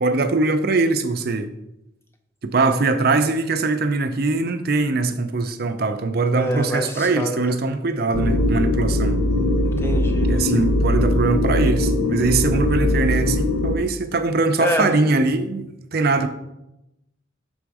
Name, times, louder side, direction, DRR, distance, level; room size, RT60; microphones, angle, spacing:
voice 1, 0.0-1.5 2.4-9.2 10.3-16.3, right 3 dB, 55° right, 0.5 m, -21 dB
voice 2, 6.3-7.6 9.6-10.3 14.6-14.9, equal, 15° left, 0.6 m, -26 dB
sound 1, 8.1-13.8, left 1 dB, 90° left, 0.6 m, -20 dB
6.3 x 3.4 x 4.7 m
head